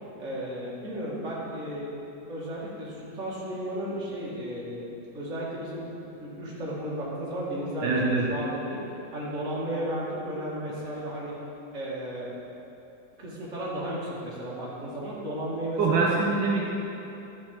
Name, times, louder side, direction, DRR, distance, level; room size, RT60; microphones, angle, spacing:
voice 1, 0.2-1.9 2.3-4.9 5.1-8.8 9.1-11.3 11.7-12.3 13.2-16.3, right 1 dB, 40° right, -7 dB, 2.2 m, -34 dB
voice 2, 7.8-8.2 15.8-16.7, right 3 dB, 80° right, -4 dB, 1.7 m, -24 dB
12.0 x 6.2 x 4.4 m, 2.9 s
omnidirectional pair, 2.0 m